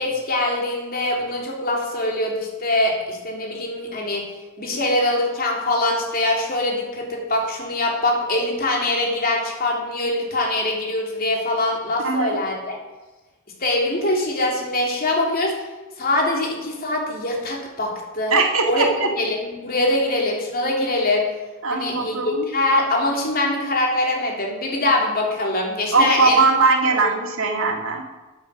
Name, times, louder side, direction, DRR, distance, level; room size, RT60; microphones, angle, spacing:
voice 1, 0.0-4.3 4.6-12.8 13.6-15.5 16.0-18.3 18.7-18.9 19.2-21.3 21.7-26.5 27.0-27.1, left 2 dB, 45° left, -1 dB, 3.3 m, -23 dB
voice 2, 12.0-12.4 18.3-19.1 21.6-22.5 25.9-28.0, right 4 dB, 75° right, 2 dB, 2.2 m, -20 dB
13.5 x 8.7 x 6.3 m, 1.2 s
head